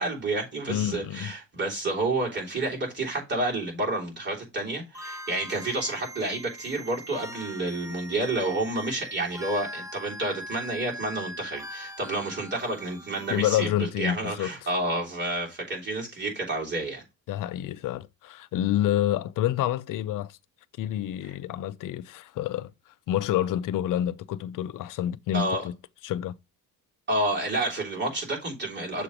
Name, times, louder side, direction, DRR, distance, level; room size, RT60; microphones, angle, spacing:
voice 1, 0.0-13.7 14.0-17.0 25.3-25.6 27.1-29.0, right 2 dB, 30° right, 3.2 m, -29 dB
voice 2, 0.7-1.3 13.3-14.7 17.3-20.4 20.8-25.8 26.0-26.4, left 12 dB, 55° left, 0.5 m, -28 dB
sound 1, 4.9-13.7, equal, 10° right, 0.6 m, -41 dB
6.8 x 3.2 x 5.0 m
cardioid pair, 115°, 39 cm